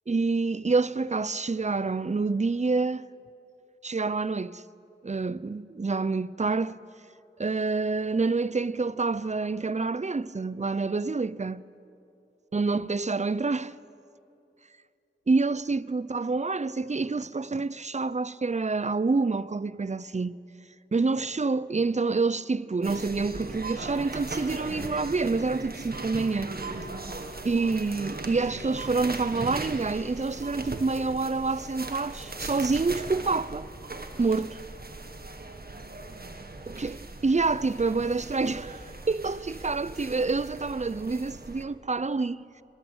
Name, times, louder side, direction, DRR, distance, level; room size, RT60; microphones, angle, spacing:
voice 1, 0.1-3.1 3.8-4.6 5.0-6.8 7.4-11.6 12.5-13.7 15.3-20.4 20.9-26.5 27.4-33.7 34.2-34.6 36.7-42.4, right 3 dB, 35° right, 0.6 m, -27 dB
sound 1, 22.8-41.6, right 2 dB, 50° right, 1.8 m, -39 dB
23.0 x 21.0 x 8.9 m
wide cardioid pair, 70°, 20 cm